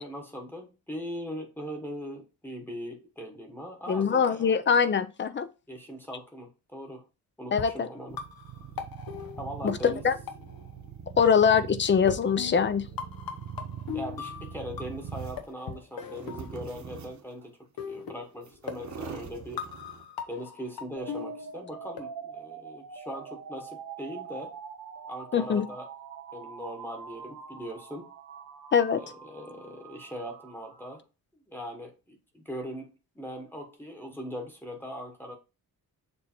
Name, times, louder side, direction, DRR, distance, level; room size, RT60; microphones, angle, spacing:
voice 1, 0.0-4.6 5.7-7.0 7.4-8.2 9.4-10.0 13.9-17.6 17.8-19.7 20.3-24.6 25.1-25.9 26.3-28.1 29.0-31.0 31.5-35.4, equal, 5° left, 1.1 m, -40 dB
voice 2, 3.9-5.5 7.5-7.9 9.6-10.1 11.2-12.9 25.3-25.6 28.7-29.0, left 6 dB, 30° left, 0.5 m, -23 dB
sound 1, 7.5-10.9 11.2-11.3 12.1-15.1 15.4-17.0 17.8-22.0, left 7 dB, 75° left, 1.2 m, -39 dB
sound 2, 8.1-15.5 16.0-17.4 18.1-18.2 18.4-20.0, right 7 dB, 55° right, 1.2 m, -42 dB
sound 3, 21.0-31.0, right 6 dB, 85° right, 1.7 m, -44 dB
7.0 x 3.2 x 4.4 m
wide cardioid pair, 165°, 36 cm